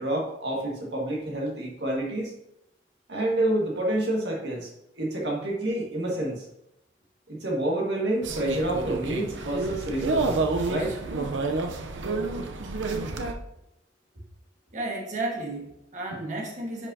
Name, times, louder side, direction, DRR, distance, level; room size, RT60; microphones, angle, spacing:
voice 1, 0.0-2.3 3.1-4.7 5.0-6.4 7.3-10.4 10.7-10.9, right 1 dB, 65° right, -1 dB, 1.9 m, -28 dB
sound 1, 8.2-13.3, right 3 dB, 85° right, 0.7 m, -29 dB
voice 2, 14.7-16.9, right 2 dB, 40° right, -1 dB, 1.5 m, -33 dB
9.8 x 5.4 x 2.8 m, 0.83 s
head